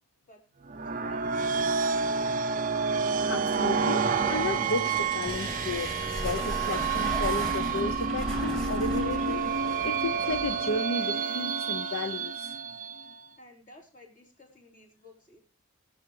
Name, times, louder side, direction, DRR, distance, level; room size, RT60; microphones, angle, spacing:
sound 1, 0.7-13.2, right 5 dB, 35° right, 0.5 m, -29 dB
voice 1, 1.0-2.2 13.4-15.4, left 1 dB, 35° left, 1 dB, 3.6 m, -53 dB
voice 2, 3.3-5.9 6.2-9.4 9.8-12.5, left 3 dB, 70° left, 8 dB, 0.7 m, -33 dB
sound 2, 4.2-10.8, left 1 dB, 20° left, 0.6 m, -43 dB
sound 3, 4.9-10.5, equal, ahead, 2.2 m, -37 dB
21.5 x 7.2 x 3.1 m, 0.32 s
head